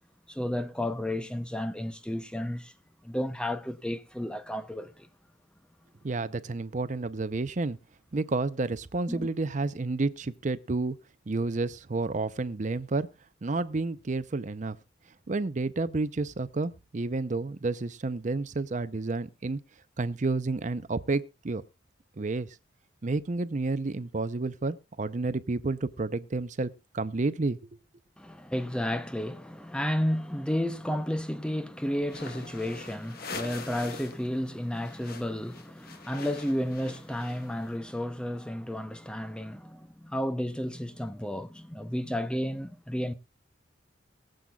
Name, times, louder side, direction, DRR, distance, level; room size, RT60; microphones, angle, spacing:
voice 1, 0.3-2.7 3.0-5.1 9.1-9.3 28.2-43.1, left 1 dB, 5° left, 0.6 m, -32 dB
voice 2, 6.0-7.8 8.1-10.9 11.3-13.1 13.4-14.8 15.3-19.6 20.0-21.6 22.2-22.5 23.0-27.8, right 3 dB, 40° right, 0.6 m, -30 dB
sound 1, 32.0-34.3 34.5-37.7, left 4 dB, 55° left, 1.2 m, -43 dB
22.5 x 7.8 x 2.3 m
head